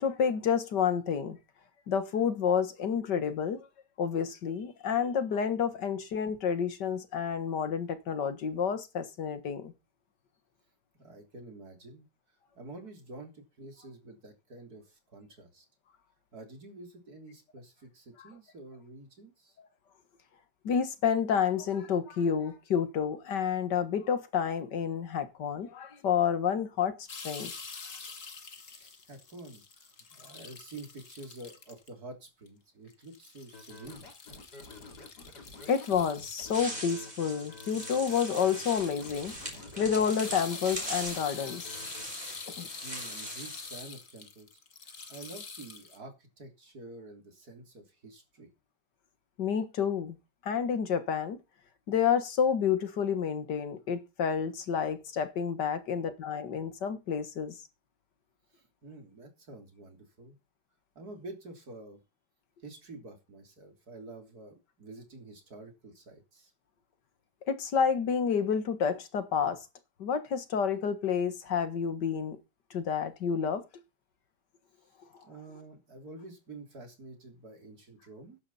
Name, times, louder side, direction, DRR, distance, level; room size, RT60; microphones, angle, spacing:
voice 1, 0.0-1.4 1.9-3.7 4.0-9.7 20.6-27.5 35.7-39.3 39.8-41.8 42.6-42.7 49.4-50.2 50.4-51.4 51.9-57.5 67.5-69.6 70.0-72.4 72.7-73.6, left 7 dB, 90° left, 2.2 m, -29 dB
voice 2, 11.0-12.1 12.6-15.7 16.3-19.6 28.7-34.1 42.5-48.5 58.5-60.4 61.0-62.0 62.6-66.5 74.8-74.9 75.2-78.4, right 2 dB, 65° right, 3.9 m, -48 dB
sound 1, 27.1-31.9 32.5-32.6 32.9-46.0, left 5 dB, 50° left, 2.2 m, -46 dB
Scratching (performance technique), 33.5-42.0, left 3 dB, 75° left, 4.1 m, -50 dB
sound 2, 36.5-43.8, right 1 dB, 25° right, 6.9 m, -41 dB
15.5 x 11.0 x 4.2 m
omnidirectional pair, 1.8 m